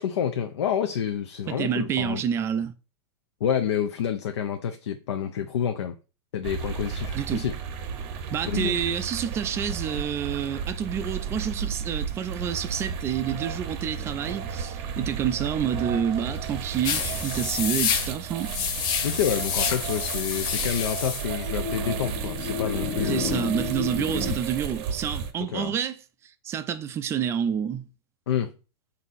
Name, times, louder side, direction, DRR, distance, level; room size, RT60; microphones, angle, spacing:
voice 1, 0.0-2.2 3.4-6.0 6.3-7.6 8.5-8.7 19.0-23.5 25.5-25.7 28.3-28.5, left 8 dB, 85° left, 0.5 m, -28 dB
voice 2, 1.5-2.7 7.1-7.5 8.3-18.5 23.0-27.9, right 8 dB, 20° right, 0.3 m, -28 dB
sound 1, 6.4-25.3, right 7 dB, 45° right, 0.7 m, -33 dB
sound 2, 16.8-24.3, left 7 dB, 35° left, 0.5 m, -29 dB
3.6 x 2.6 x 4.0 m
hypercardioid pair, 135°, 14 cm